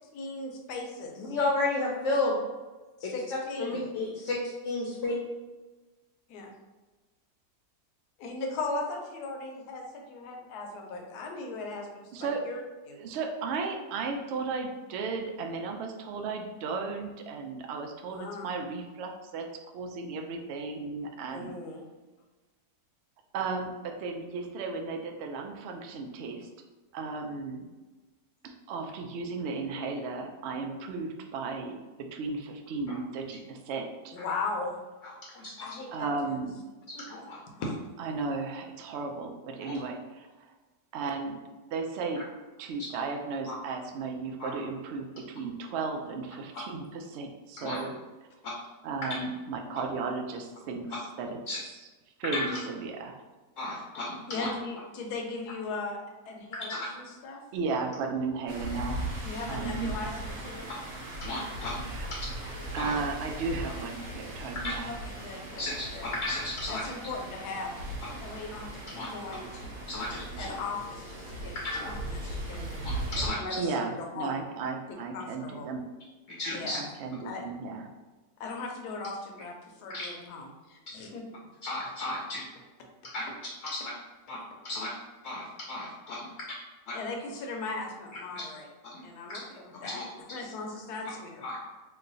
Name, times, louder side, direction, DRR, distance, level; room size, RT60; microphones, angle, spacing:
voice 1, 0.1-1.4 3.0-3.8 6.3-6.5 8.2-12.6 12.9-13.0 18.1-18.5 21.3-21.8 34.1-34.7 35.6-36.1 36.9-37.0 37.5-37.7 54.3-56.0 56.3-57.4 59.2-60.7 64.8-66.1 66.7-67.7 68.2-69.7 70.4-71.5 71.8-72.7 73.2-74.5 75.1-75.7 76.5-76.9 77.2-77.4 78.4-81.2 86.9-88.7 89.0-90.0 90.3-91.5, left 3 dB, 80° left, 2 dB, 1.2 m, -38 dB
voice 2, 1.2-2.4 3.0-3.1 3.6-4.4 4.6-5.1 32.9-33.0 35.0-35.8 37.1-37.4 39.7-39.8 43.5-43.6 44.4-44.5 47.6-47.8 51.5-51.6 52.3-52.5 53.6-54.5 56.7-56.8 61.2-61.9 62.1-62.2 62.8-62.9 64.6-64.7 65.6-66.8 68.9-69.1 69.9-70.6 71.5-71.9 72.8-73.4 76.3-76.8 79.9-80.1 81.6-82.4 83.1-83.2 83.6-83.8 84.3-84.4 84.6-84.9 85.2-86.3 86.9-87.0 88.3-88.4 88.8-89.0 89.3-89.4 89.8-90.0 91.4-91.6, left 2 dB, 65° left, -3 dB, 0.8 m, -33 dB
voice 3, 12.1-12.4 13.0-21.5 23.3-26.5 26.9-27.6 28.4-31.8 32.1-34.2 35.9-36.6 38.0-40.5 40.9-41.4 41.7-42.2 42.6-47.9 48.8-51.8 52.2-53.2 57.5-59.1 59.5-60.0 61.8-62.1 62.7-64.9 73.6-75.8 76.7-77.9, right 4 dB, 90° right, 3 dB, 0.5 m, -35 dB
sound 1, 58.5-73.3, right 1 dB, 60° right, 1.1 m, -38 dB
3.1 x 2.2 x 3.8 m, 1.2 s
omnidirectional pair, 1.7 m